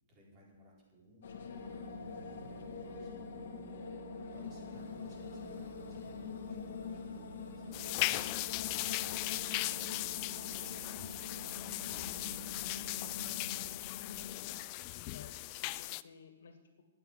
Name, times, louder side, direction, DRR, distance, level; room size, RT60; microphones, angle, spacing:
voice 1, 0.1-9.1 9.3-13.8, equal, 20° right, -3 dB, 4.3 m, -62 dB
sound 1, 1.2-14.6, left 6 dB, 60° left, 1.7 m, -45 dB
sound 2, 1.6-13.7, right 8 dB, 55° right, 1.5 m, -53 dB
sound 3, 7.7-16.0, left 19 dB, 30° left, 0.3 m, -38 dB
voice 2, 15.1-16.8, left 5 dB, 75° left, 6 dB, 2.3 m, -56 dB
9.8 x 9.1 x 9.9 m, 1.2 s
hypercardioid pair, 160°, 0 cm